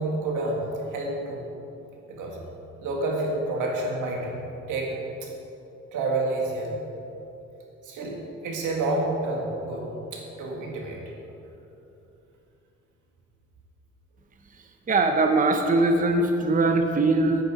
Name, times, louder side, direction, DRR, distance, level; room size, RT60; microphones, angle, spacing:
voice 1, 0.0-1.5 2.1-2.4 2.8-5.0 5.2-5.3 5.9-6.8 7.8-11.1, right 2 dB, 80° right, -1 dB, 2.0 m, -29 dB
voice 2, 14.9-17.4, right 2 dB, 25° right, 5 dB, 0.8 m, -21 dB
9.3 x 9.0 x 4.8 m, 2.9 s
cardioid pair, 90°, 30 cm